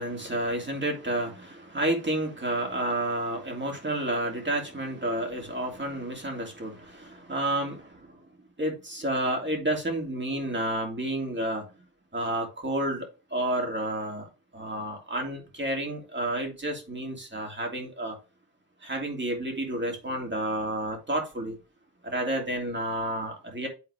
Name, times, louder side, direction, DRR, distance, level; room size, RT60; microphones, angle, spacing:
voice 1, 0.0-8.2 8.6-11.7 12.1-18.2 18.8-21.6 22.0-23.7, right 1 dB, 25° right, 3.0 m, -30 dB
9.5 x 4.0 x 3.5 m
cardioid pair, 65°, 42 cm